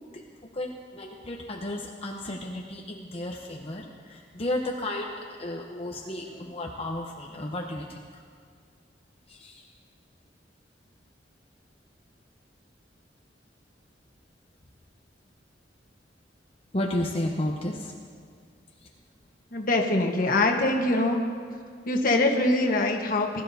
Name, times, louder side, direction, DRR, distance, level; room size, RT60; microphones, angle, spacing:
voice 1, 0.5-5.1 5.4-8.0 9.3-9.6 16.7-17.9, left 1 dB, 35° left, -1 dB, 0.8 m, -33 dB
voice 2, 19.5-21.2 21.8-23.4, left 2 dB, 50° left, 1 dB, 1.2 m, -23 dB
20.5 x 12.0 x 2.7 m, 2.1 s
head